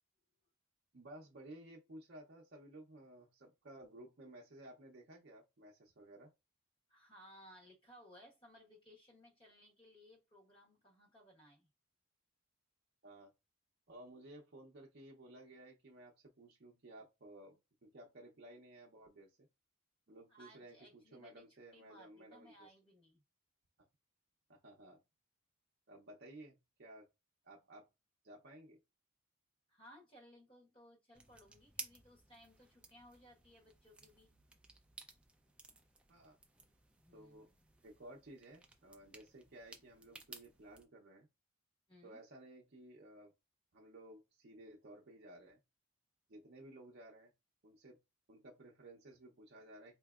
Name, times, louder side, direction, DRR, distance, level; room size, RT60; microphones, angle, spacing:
voice 1, 0.9-6.3 13.0-13.3 13.9-19.5 20.1-22.7 24.5-25.0 25.9-27.1 27.4-27.9 28.2-28.8 36.1-36.4 37.1-37.5 37.8-41.3 42.0-43.3 43.7-45.6 46.3-47.3 47.6-48.0 48.3-50.0, right 1 dB, 50° right, 0.6 m, -56 dB
voice 2, 6.9-11.7 20.3-21.5 21.7-23.2 29.7-34.3 37.0-37.7 41.9-42.2, equal, 25° left, 1.2 m, -61 dB
sound 1, 31.1-40.8, right 3 dB, 5° right, 0.3 m, -56 dB
4.4 x 2.8 x 2.3 m
head